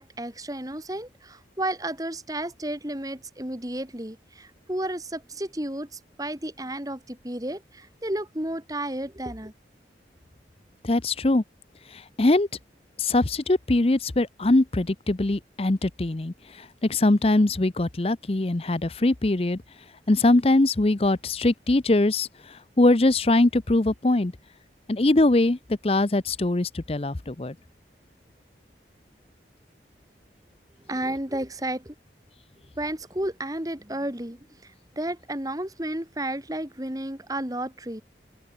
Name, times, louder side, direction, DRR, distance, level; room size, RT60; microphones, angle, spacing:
voice 1, 0.0-9.5 30.9-31.9 32.8-38.0, right 1 dB, 20° right, 2.5 m, -32 dB
voice 2, 10.8-11.4 11.9-12.5 13.0-19.6 20.1-24.3 24.9-27.5, left 2 dB, 35° left, 0.7 m, -22 dB
head